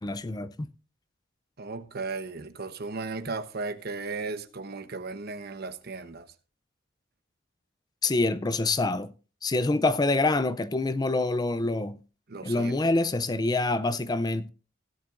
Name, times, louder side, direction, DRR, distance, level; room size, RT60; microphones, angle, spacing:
voice 1, 0.0-0.7 8.0-9.1 9.4-12.0 12.4-14.5, left 2 dB, 20° left, 0.4 m, -26 dB
voice 2, 1.6-6.3 12.3-12.7, right 3 dB, 55° right, 1.0 m, -36 dB
16.5 x 10.5 x 2.5 m
head